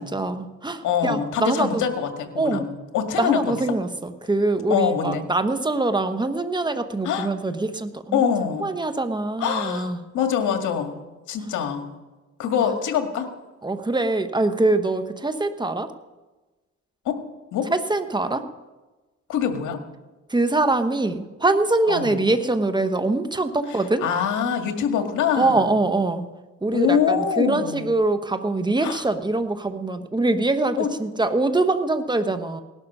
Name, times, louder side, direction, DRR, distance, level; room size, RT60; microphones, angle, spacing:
voice 1, 0.0-1.8 2.4-2.7 3.2-8.2 8.6-10.0 12.6-12.8 13.6-15.9 17.7-18.4 20.3-24.0 25.4-26.3 26.6-32.6, right 2 dB, 15° right, 9 dB, 1.2 m, -23 dB
voice 2, 0.8-3.8 4.7-5.2 7.0-7.3 8.1-8.7 9.4-9.9 10.1-11.0 11.3-11.8 12.4-13.3 17.1-17.2 17.5-17.7 19.3-19.8 21.9-22.2 24.0-25.7 26.7-27.9 28.8-29.0 30.8-30.9, left 7 dB, 85° left, 6 dB, 1.9 m, -24 dB
18.0 x 12.0 x 5.5 m, 1.2 s
cardioid pair, 90°, 30 cm